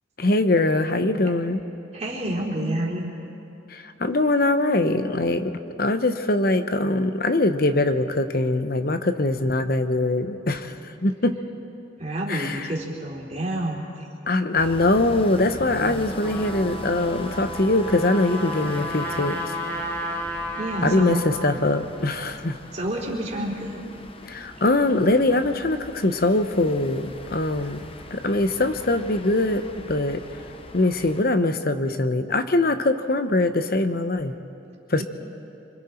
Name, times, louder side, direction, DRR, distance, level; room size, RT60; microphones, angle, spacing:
voice 1, 0.2-1.6 3.7-5.5 5.8-10.8 11.0-11.4 12.3-12.7 14.3-19.4 20.8-22.6 24.3-27.8 28.1-30.2 30.7-34.3 34.9-35.0, left 2 dB, 50° left, 9 dB, 1.0 m, -22 dB
voice 2, 1.9-3.1 12.0-14.1 20.6-21.2 22.7-23.8, right 1 dB, 35° right, -3 dB, 3.4 m, -28 dB
sound 1, 14.6-31.2, left 2 dB, 30° left, 0.9 m, -41 dB
Trumpet, 16.2-21.9, equal, 10° left, 1.9 m, -33 dB
26.5 x 25.5 x 4.5 m, 2.9 s
head